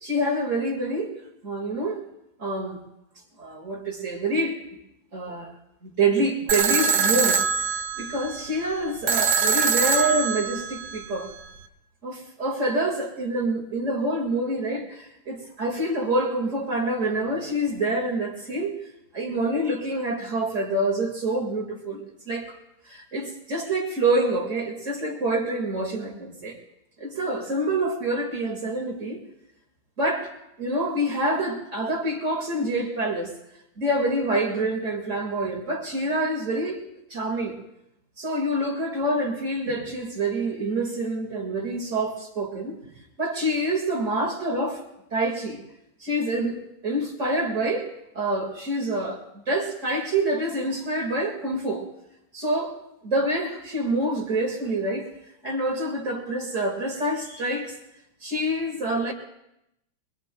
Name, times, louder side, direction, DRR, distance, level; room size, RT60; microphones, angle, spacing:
voice 1, 0.0-1.2 1.4-2.0 2.4-2.8 3.4-4.6 5.1-5.5 5.8-11.3 12.0-18.7 19.1-22.6 22.9-26.6 27.0-29.2 30.0-30.3 30.6-33.3 33.8-36.8 37.1-37.6 38.2-42.8 43.2-44.8 45.1-45.6 46.0-51.9 52.3-52.8 53.0-55.1 55.4-57.7 58.2-59.1, right 1 dB, 30° right, 0 dB, 1.7 m, -26 dB
sound 1, 6.5-11.5, right 6 dB, 85° right, 2.3 m, -24 dB
24.5 x 22.0 x 2.2 m, 0.85 s
omnidirectional pair, 3.6 m